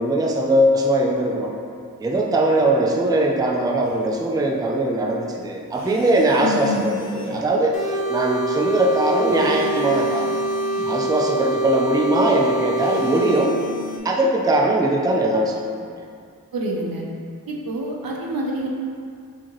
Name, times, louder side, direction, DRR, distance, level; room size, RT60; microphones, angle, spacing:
voice 1, 0.0-1.5 2.0-10.4 10.9-13.6 14.0-15.9, right 1 dB, 10° right, 0 dB, 0.3 m, -20 dB
sound 1, 3.8-4.0 5.7-7.5 9.3-11.0 12.8-14.0, left 3 dB, 50° left, 0.6 m, -36 dB
voice 2, 6.4-6.9 16.5-17.1 17.5-18.7, equal, 75° right, -1 dB, 0.6 m, -27 dB
sound 2, 7.7-13.5, right 1 dB, 85° left, 0.7 m, -25 dB
4.8 x 2.8 x 3.0 m, 2.2 s
wide cardioid pair, 80°, 35 cm